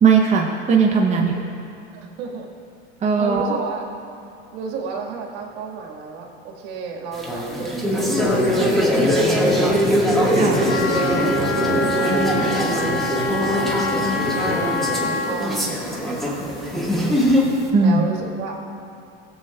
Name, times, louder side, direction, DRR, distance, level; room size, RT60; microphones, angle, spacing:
voice 1, 0.0-1.3 3.0-3.7 10.3-10.6 17.7-18.0, right 5 dB, 20° right, 0 dB, 0.8 m, -18 dB
voice 2, 1.9-2.5 3.2-3.8 4.5-8.1 8.5-9.9 10.5-11.6 12.1-12.8 13.4-14.7 15.0-17.0 17.8-18.6, right 4 dB, 65° right, 1 dB, 1.7 m, -33 dB
sound 1, 7.1-17.6, equal, ahead, 1.6 m, -21 dB
Wind instrument woodwind instrument, 10.5-15.4, left 2 dB, 50° left, 1.1 m, -25 dB
16.5 x 7.6 x 2.3 m, 2.6 s
supercardioid pair, 100°, 31 cm